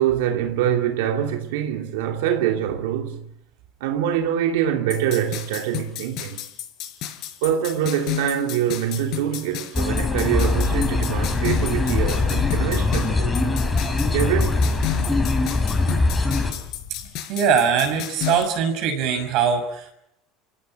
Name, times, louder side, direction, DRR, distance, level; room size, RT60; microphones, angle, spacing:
voice 1, 0.0-3.3 3.8-6.4 7.4-13.5 14.1-14.6, right 10 dB, 85° right, 2.8 m, -24 dB
sound 1, 4.9-18.4, left 11 dB, 55° left, 5.3 m, -32 dB
sound 2, 9.7-16.5, left 3 dB, 10° left, 5.0 m, -22 dB
Wind, 11.7-17.2, left 11 dB, 70° left, 4.8 m, -34 dB
voice 2, 17.3-19.9, right 7 dB, 55° right, 6.6 m, -21 dB
30.0 x 17.5 x 7.8 m
supercardioid pair, 145°, 0 cm